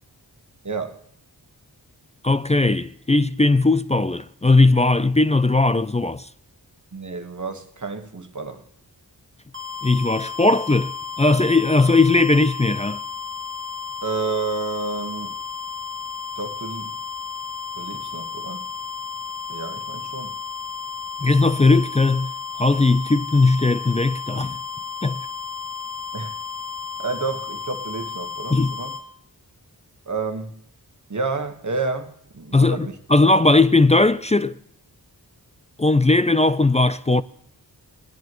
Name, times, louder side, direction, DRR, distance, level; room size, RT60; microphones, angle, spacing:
voice 1, 0.6-1.0 6.9-8.6 14.0-15.4 16.4-16.9 17.7-18.7 19.5-20.3 26.1-26.3 27.0-29.0 30.1-30.5 31.1-33.0, right 4 dB, 45° right, 1.4 m, -30 dB
voice 2, 2.2-6.3 9.8-10.9 11.2-13.0 21.2-22.3 22.6-24.6 25.0-25.2 28.5-28.7 32.5-34.6 35.8-37.2, left 3 dB, 20° left, 0.4 m, -18 dB
sound 1, 9.5-29.0, left 6 dB, 30° right, 1.7 m, -33 dB
19.0 x 10.5 x 3.0 m
wide cardioid pair, 55°, 40 cm